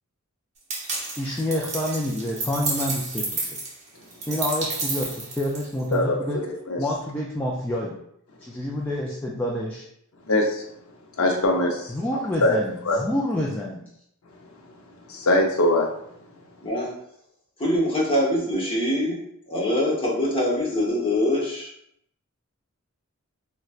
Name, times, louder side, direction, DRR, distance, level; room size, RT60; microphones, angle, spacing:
sound 1, 0.7-5.9, right 3 dB, 30° right, 0.8 m, -31 dB
voice 1, 1.2-3.6 4.3-6.4 6.8-8.0 8.4-9.8 11.9-13.8, left 1 dB, 10° left, -4 dB, 0.3 m, -28 dB
voice 2, 10.3-10.6 11.2-11.9 12.4-12.6 12.9-13.0 15.1-15.9, left 1 dB, 75° left, 1 dB, 0.7 m, -21 dB
voice 3, 16.6-16.9 17.6-19.2 19.5-21.7, left 1 dB, 25° left, -5 dB, 1.0 m, -24 dB
4.0 x 2.2 x 2.4 m, 0.72 s
head